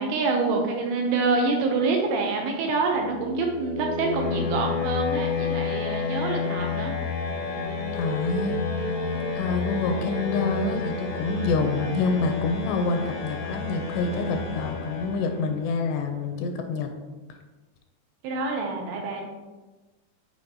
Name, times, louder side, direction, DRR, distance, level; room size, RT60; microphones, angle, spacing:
voice 1, 0.0-6.9 18.2-19.3, right 3 dB, 80° right, 1 dB, 2.5 m, -26 dB
sound 1, 2.8-15.7, left 5 dB, 65° left, 1.4 m, -31 dB
sound 2, 7.0-14.4, right 3 dB, 55° right, 2.6 m, -37 dB
voice 2, 7.9-8.6 9.2-16.9, left 4 dB, 85° left, 5 dB, 2.6 m, -27 dB
9.2 x 5.0 x 2.8 m, 1.2 s
omnidirectional pair, 5.0 m